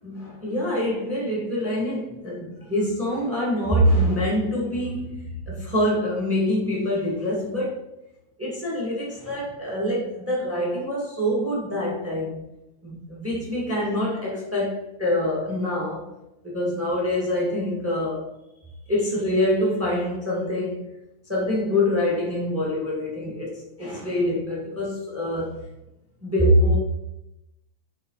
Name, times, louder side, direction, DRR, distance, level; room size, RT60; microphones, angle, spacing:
voice 1, 0.0-7.9 8.4-12.5 12.8-16.1 16.4-18.3 18.9-20.9 21.3-25.7 26.2-26.7, left 1 dB, 20° right, 0.4 m, -25 dB
8.1 x 4.0 x 4.1 m
omnidirectional pair, 4.6 m